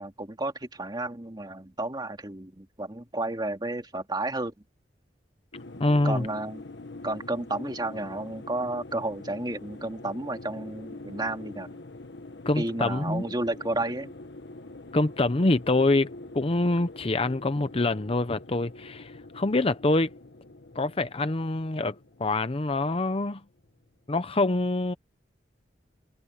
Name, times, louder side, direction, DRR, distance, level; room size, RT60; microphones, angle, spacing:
voice 1, 0.0-4.5 6.0-6.6 7.0-11.8 12.6-14.1, right 2 dB, 25° right, 2.5 m, -32 dB
sound 1, 5.5-23.9, left 2 dB, 70° left, 1.5 m, -45 dB
voice 2, 5.8-6.3 12.5-13.2 14.9-20.1 20.7-23.4 24.1-24.9, left 2 dB, 30° left, 0.8 m, -25 dB
head